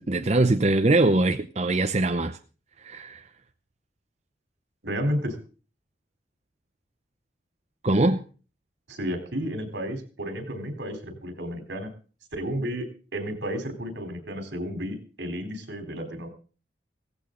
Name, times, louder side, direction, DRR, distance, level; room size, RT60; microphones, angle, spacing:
voice 1, 0.0-2.4 2.8-3.2 7.8-8.2, right 2 dB, 35° right, 0.7 m, -22 dB
voice 2, 4.8-5.4 8.9-11.9 12.3-16.3, equal, 80° right, 3.7 m, -32 dB
17.0 x 15.0 x 3.9 m
head